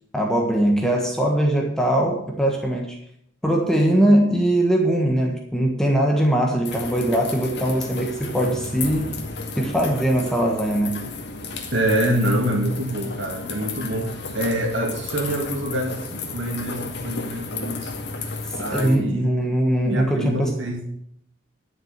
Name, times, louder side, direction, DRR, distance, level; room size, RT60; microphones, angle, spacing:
voice 1, 0.1-3.0 3.4-9.2 9.6-11.0 18.5-20.5, right 1 dB, 5° left, 0 dB, 1.4 m, -21 dB
sound 1, 6.6-19.0, left 3 dB, 60° left, 2.1 m, -33 dB
voice 2, 11.7-17.9 18.6-19.3 19.8-20.8, right 1 dB, 75° right, 1 dB, 2.2 m, -25 dB
11.0 x 6.3 x 7.4 m, 0.71 s
head